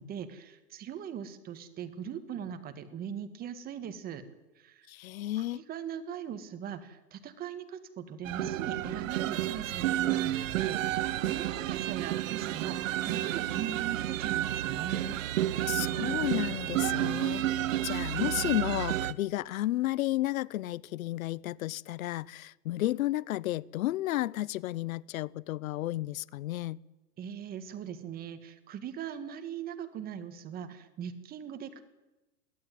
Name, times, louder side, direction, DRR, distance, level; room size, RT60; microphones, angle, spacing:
voice 1, 0.0-4.2 4.6-4.9 5.4-15.2 27.2-31.8, right 8 dB, 20° right, 1.8 m, -40 dB
voice 2, 4.9-5.6 15.7-26.8, left 15 dB, 60° left, 0.8 m, -32 dB
sound 1, 8.2-19.1, right 13 dB, 55° right, 1.0 m, -31 dB
23.0 x 16.5 x 9.3 m
supercardioid pair, 155°, 47 cm